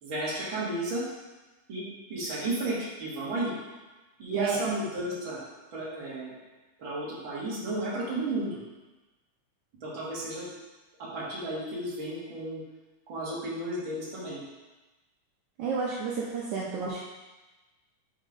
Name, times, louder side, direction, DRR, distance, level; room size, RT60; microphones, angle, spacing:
voice 1, 0.0-1.0 1.7-3.5 4.2-5.4 5.7-6.3 6.8-8.6 9.8-10.5 11.1-12.6 13.1-14.4, right 2 dB, 45° right, -7 dB, 2.5 m, -33 dB
voice 2, 15.6-17.0, right 5 dB, 75° right, -5 dB, 2.2 m, -31 dB
5.8 x 5.3 x 5.1 m, 1.1 s
omnidirectional pair, 3.6 m